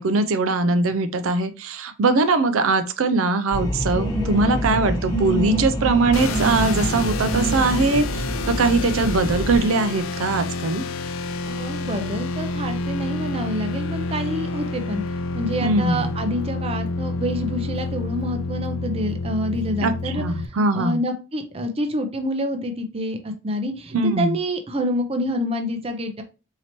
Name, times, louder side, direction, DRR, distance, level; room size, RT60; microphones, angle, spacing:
voice 1, 0.0-10.8 15.6-16.1 19.8-21.0 23.9-24.4, right 3 dB, 85° right, 10 dB, 0.5 m, -21 dB
sound 1, 3.5-9.6, right 1 dB, 20° left, 0.6 m, -26 dB
sound 2, 6.1-20.5, left 3 dB, 90° left, 0.5 m, -29 dB
voice 2, 11.5-26.2, equal, 30° right, 6 dB, 0.5 m, -27 dB
4.3 x 2.8 x 2.9 m, 0.31 s
head